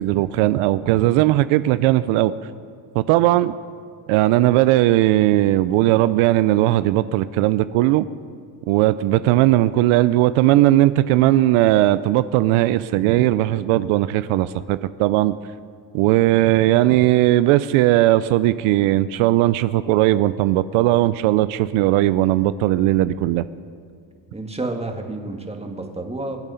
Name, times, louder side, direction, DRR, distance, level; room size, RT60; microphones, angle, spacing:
voice 1, 0.0-2.3 2.9-3.6 4.1-8.1 8.7-15.3 15.9-23.4, right 15 dB, 80° right, 15 dB, 0.6 m, -18 dB
voice 2, 24.3-26.4, right 2 dB, 10° right, 4 dB, 2.0 m, -30 dB
23.5 x 8.9 x 5.7 m, 2.2 s
supercardioid pair, 90°, 49 cm